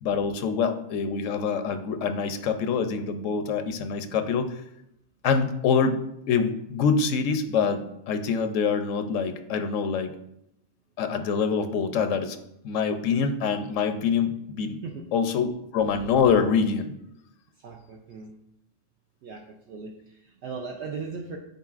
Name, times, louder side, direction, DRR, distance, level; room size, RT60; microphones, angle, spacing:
voice 1, 0.0-4.5 5.2-6.0 6.3-10.1 11.0-12.4 12.6-14.8 15.1-16.9, left 6 dB, 85° left, 9 dB, 1.0 m, -25 dB
voice 2, 14.8-15.1 17.5-18.4 19.2-21.4, right 4 dB, 70° right, 1 dB, 0.9 m, -38 dB
9.4 x 4.1 x 2.4 m, 0.80 s
omnidirectional pair, 1.3 m